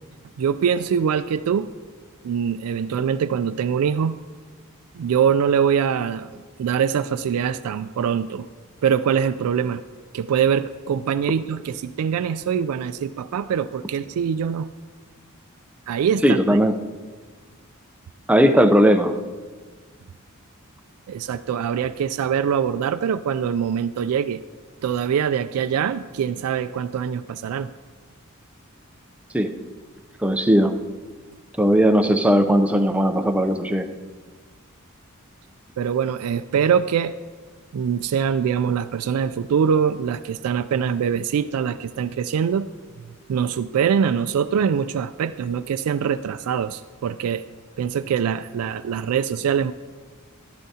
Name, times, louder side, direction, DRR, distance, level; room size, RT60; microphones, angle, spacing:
voice 1, 0.4-1.7 2.2-4.2 4.9-8.5 8.8-9.8 10.1-14.7 15.9-16.6 21.1-24.4 24.8-27.7 35.8-37.1 37.7-42.7 43.3-47.4 47.8-49.7, right 7 dB, 90° right, 11 dB, 0.3 m, -23 dB
voice 2, 16.2-16.7 18.3-19.2 29.3-29.5 30.2-30.7 31.6-33.9, equal, 5° right, 6 dB, 0.5 m, -17 dB
14.0 x 12.0 x 2.8 m, 1.5 s
head